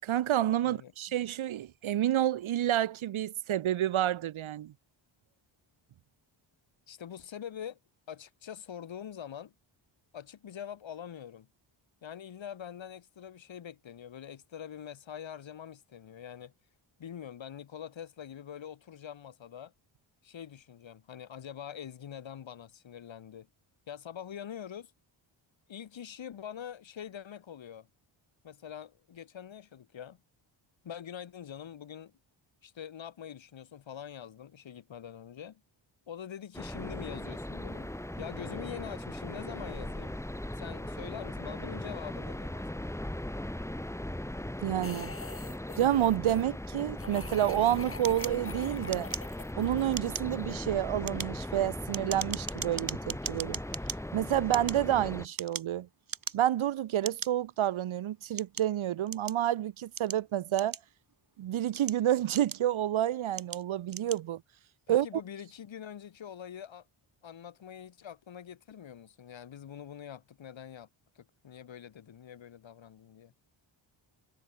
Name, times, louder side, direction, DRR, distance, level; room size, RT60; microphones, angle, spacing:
voice 1, 0.0-4.7 44.6-45.1 45.8-49.1 49.5-53.6 54.1-55.9 56.3-60.8 61.4-64.4 64.9-65.1, right 12 dB, 75° right, 1.0 m, -29 dB
voice 2, 6.9-7.8 8.1-9.5 10.1-11.5 12.0-16.5 17.0-19.7 20.2-23.5 23.9-24.9 25.7-27.9 28.4-30.2 30.8-32.1 32.6-35.6 36.1-40.2 40.5-42.9 64.9-66.9 67.2-70.9 71.1-73.3, left 9 dB, 65° left, 2.9 m, -44 dB
sound 1, 36.5-55.3, left 1 dB, 5° left, 3.9 m, -39 dB
Guttural Monster Noises, 44.8-46.5 47.0-50.5, left 4 dB, 25° left, 2.3 m, -46 dB
sound 2, 48.0-49.6 49.9-50.4 50.9-54.0 54.4-55.8 56.1-56.6 57.0-57.3 58.0-59.4 60.0-61.1 61.6-62.8 63.3-63.6 63.9-64.2, right 6 dB, 45° right, 3.7 m, -39 dB
wide cardioid pair, 170°, 49 cm